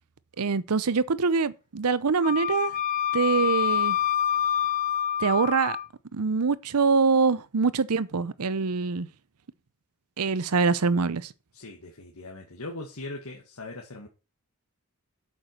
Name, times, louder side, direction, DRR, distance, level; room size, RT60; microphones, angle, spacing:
voice 1, 0.4-2.7 3.1-4.0 5.2-5.8 6.1-9.1 10.2-11.3, right 4 dB, 85° right, 0.7 m, -24 dB
Wind instrument woodwind instrument, 2.2-5.9, left 10 dB, 35° left, 0.6 m, -26 dB
voice 2, 11.5-14.1, left 2 dB, 75° left, 1.8 m, -40 dB
8.1 x 8.1 x 5.9 m
head